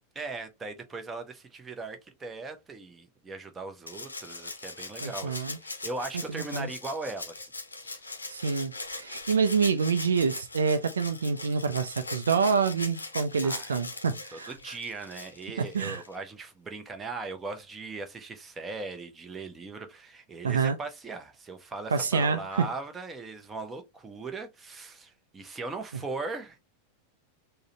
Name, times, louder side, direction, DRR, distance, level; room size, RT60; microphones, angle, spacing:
voice 1, 0.1-7.5 7.8-8.2 13.4-13.7 14.3-26.6, right 3 dB, 15° right, 0.7 m, -39 dB
Rattle (instrument), 3.9-16.2 17.6-17.7, left 3 dB, 80° left, 0.6 m, -40 dB
voice 2, 5.0-5.6 6.3-6.7 8.3-14.5 15.7-16.0 20.4-20.8 21.9-22.7, right 5 dB, 70° right, 0.3 m, -27 dB
3.7 x 2.1 x 2.6 m
figure-of-eight pair, 90°, 0 cm